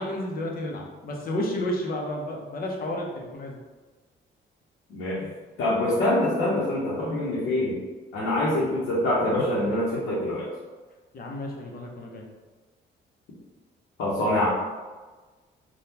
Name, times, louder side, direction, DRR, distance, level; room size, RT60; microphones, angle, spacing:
voice 1, 0.0-3.5 11.1-12.2, left 1 dB, 50° left, 0 dB, 0.7 m, -31 dB
voice 2, 4.9-5.3 5.6-7.7 8.1-10.5 14.0-14.5, left 1 dB, 85° left, -8 dB, 0.9 m, -25 dB
3.5 x 2.3 x 2.8 m, 1.3 s
cardioid pair, 90°, 20 cm